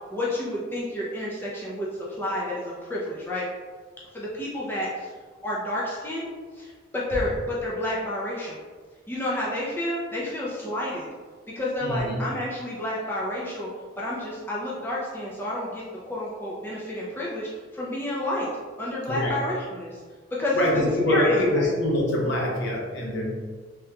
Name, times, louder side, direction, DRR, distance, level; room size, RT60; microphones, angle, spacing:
voice 1, 0.1-3.5 4.1-5.1 5.4-6.3 6.6-8.6 9.1-11.1 11.6-13.7 14.0-18.5 18.8-20.0 20.4-21.7, left 1 dB, 10° left, -6 dB, 0.4 m, -30 dB
voice 2, 11.8-12.2 19.1-19.4 20.5-23.3, left 1 dB, 60° left, -2 dB, 0.7 m, -24 dB
3.6 x 2.9 x 2.2 m, 1.5 s
head